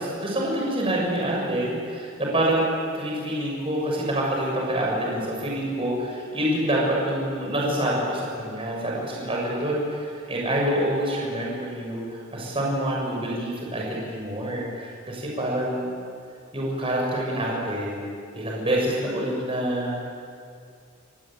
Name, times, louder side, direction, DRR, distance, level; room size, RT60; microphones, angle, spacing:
voice 1, 0.0-2.7 2.9-15.9 16.5-20.0, right 1 dB, 25° right, -3 dB, 7.2 m, -27 dB
29.5 x 20.0 x 9.2 m, 2.3 s
head